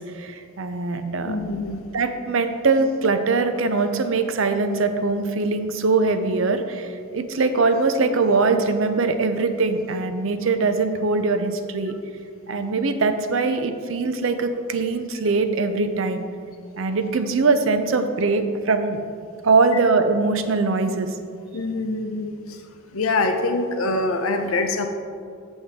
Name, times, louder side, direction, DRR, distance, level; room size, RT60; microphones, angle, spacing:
voice 1, 0.0-1.4 1.9-11.9 12.5-16.3 16.8-19.0 19.4-21.1, right 3 dB, 70° right, 8 dB, 0.6 m, -22 dB
voice 2, 1.3-1.8 21.5-22.6 22.9-24.9, left 2 dB, 80° left, 6 dB, 0.7 m, -24 dB
7.9 x 7.1 x 3.6 m, 2.2 s
head